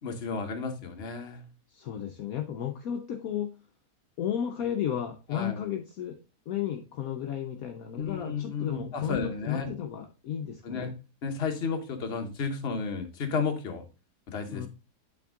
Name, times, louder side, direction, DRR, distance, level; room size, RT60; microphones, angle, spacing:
voice 1, 0.0-1.4 5.3-5.6 7.9-9.7 10.6-10.9 11.2-13.8 14.3-14.7, left 5 dB, 45° left, 4 dB, 1.2 m, -32 dB
voice 2, 1.7-3.6 4.2-6.2 6.5-10.9 14.5-14.7, left 10 dB, 65° left, 4 dB, 1.1 m, -33 dB
8.6 x 3.6 x 3.6 m, 0.31 s
omnidirectional pair, 1.8 m